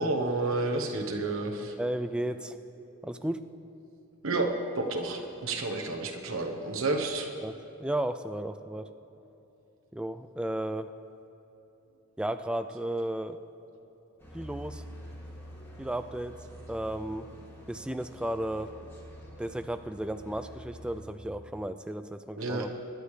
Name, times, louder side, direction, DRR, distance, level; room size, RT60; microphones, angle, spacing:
voice 1, 0.0-1.7 4.2-7.3 22.4-22.7, right 2 dB, 70° right, 2 dB, 1.1 m, -30 dB
voice 2, 1.8-2.6 3.0-3.4 7.4-7.5 7.8-8.9 9.9-10.9 12.2-13.4 14.3-14.8 15.8-16.3 16.7-17.3 17.7-18.7 19.4-22.7, right 1 dB, 5° right, 9 dB, 0.3 m, -34 dB
sound 1, 14.2-21.0, equal, 10° left, 1.9 m, -47 dB
24.5 x 10.5 x 3.3 m, 3.0 s
head